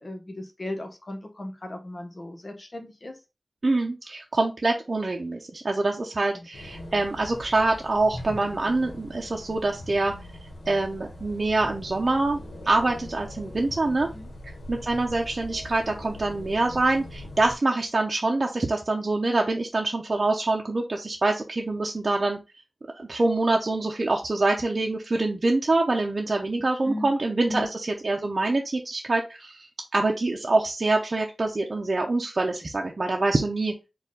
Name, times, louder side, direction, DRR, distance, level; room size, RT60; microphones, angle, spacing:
voice 1, 0.0-3.2 6.3-6.5 14.0-14.3 26.6-27.1 27.5-27.7, left 1 dB, 50° left, 5 dB, 1.0 m, -36 dB
voice 2, 3.6-10.1 10.7-12.4 12.7-14.1 14.7-22.4 23.0-33.7, right 2 dB, 55° right, 1 dB, 0.6 m, -25 dB
sound 1, 6.5-17.6, left 1 dB, 85° left, 1.0 m, -41 dB
4.4 x 2.4 x 3.7 m, 0.27 s
cardioid pair, 40°, 0 cm